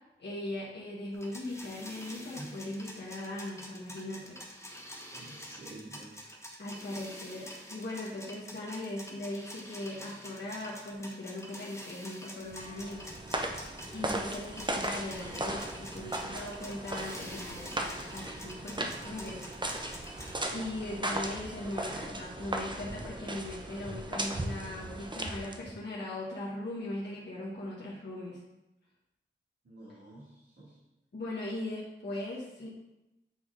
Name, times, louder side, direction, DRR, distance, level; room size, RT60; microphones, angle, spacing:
voice 1, 0.2-4.3 6.6-19.4 20.0-28.4 31.1-32.7, left 1 dB, 55° left, -6 dB, 1.2 m, -39 dB
sound 1, 1.1-20.4, equal, 15° left, 1.0 m, -47 dB
voice 2, 5.1-6.3 29.6-30.8, right 2 dB, 85° right, -10 dB, 1.9 m, -50 dB
sound 2, 12.5-25.8, right 1 dB, 20° right, 0.6 m, -37 dB
sound 3, 12.6-14.4, left 2 dB, 40° left, 0.7 m, -56 dB
8.4 x 3.5 x 3.7 m, 0.96 s
wide cardioid pair, 70°, 21 cm